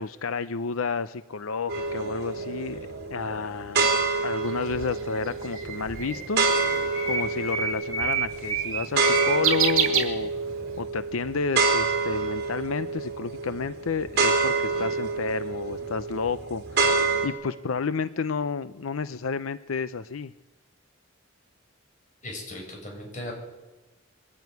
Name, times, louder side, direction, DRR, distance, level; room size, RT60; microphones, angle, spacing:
voice 1, 0.0-2.8 3.1-3.9 4.2-6.5 7.1-10.3 10.8-20.3, left 5 dB, 85° left, 13 dB, 0.6 m, -31 dB
sound 1, 1.7-17.3, right 4 dB, 50° right, 3.8 m, -27 dB
Bird, 4.5-10.7, right 7 dB, 75° right, 2.7 m, -28 dB
voice 2, 22.2-23.3, left 1 dB, 35° left, 0 dB, 7.3 m, -37 dB
23.0 x 14.0 x 9.6 m, 1.1 s
head